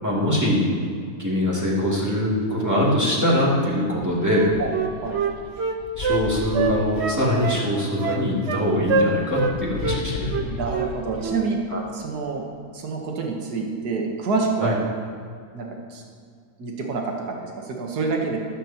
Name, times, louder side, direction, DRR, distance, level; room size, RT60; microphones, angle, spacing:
voice 1, 0.0-0.7 1.2-4.6 6.0-10.3 11.7-11.8 14.6-14.7, left 1 dB, 10° right, -7 dB, 2.8 m, -22 dB
sound 1, 4.0-7.6 8.6-12.2, left 4 dB, 50° left, 0.6 m, -36 dB
Wind instrument woodwind instrument, 4.3-6.2 6.5-7.7 8.0-8.6 8.9-9.6 9.8-10.0 10.3-10.9 11.2-11.4, right 5 dB, 50° right, 0.9 m, -25 dB
voice 2, 10.4-11.6 11.9-12.4 12.7-14.7 15.5-16.0 16.6-18.4, right 4 dB, 80° right, 0 dB, 1.8 m, -27 dB
20.5 x 9.9 x 3.0 m, 2.1 s
omnidirectional pair, 1.7 m